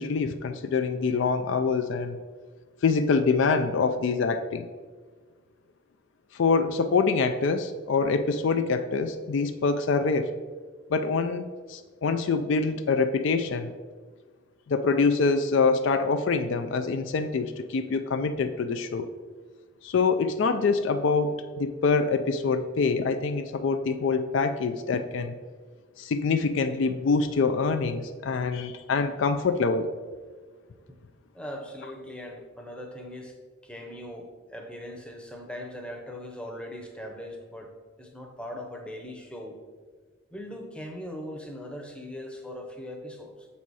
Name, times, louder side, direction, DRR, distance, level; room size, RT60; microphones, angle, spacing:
voice 1, 0.0-2.2 2.8-4.7 6.3-10.3 10.9-13.7 14.7-19.0 19.8-25.3 26.0-29.9, left 4 dB, 60° left, 9 dB, 0.3 m, -25 dB
voice 2, 31.3-33.4 33.6-37.7 38.0-39.6 40.3-43.5, left 1 dB, 5° left, 2 dB, 0.7 m, -40 dB
7.2 x 4.2 x 4.7 m, 1.5 s
head